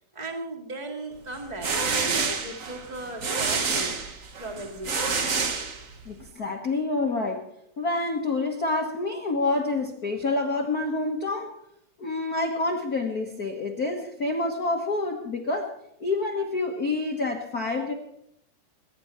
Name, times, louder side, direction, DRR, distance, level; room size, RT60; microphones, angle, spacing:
voice 1, 0.1-3.9 4.4-5.2, right 2 dB, 15° right, 2 dB, 1.8 m, -37 dB
sound 1, 1.3-6.2, right 4 dB, 85° right, 0.7 m, -28 dB
voice 2, 6.0-7.4 7.8-11.5 12.0-15.7 16.0-17.9, left 3 dB, 45° left, 1 dB, 1.3 m, -27 dB
22.5 x 10.5 x 4.4 m, 0.77 s
omnidirectional pair, 3.5 m